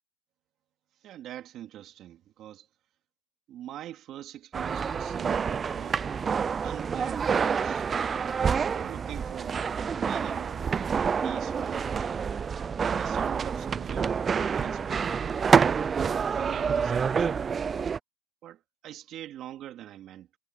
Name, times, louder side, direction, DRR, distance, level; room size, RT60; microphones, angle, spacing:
voice 1, 1.0-2.7 3.5-6.1 6.6-7.9 8.4-10.7 11.2-12.4 12.8-14.2 14.5-15.2 15.9-17.5 18.4-20.3, right 12 dB, 30° right, 3.5 m, -43 dB
sound 1, 4.5-18.0, right 6 dB, 15° right, 0.3 m, -27 dB
supercardioid pair, 165°, 0 cm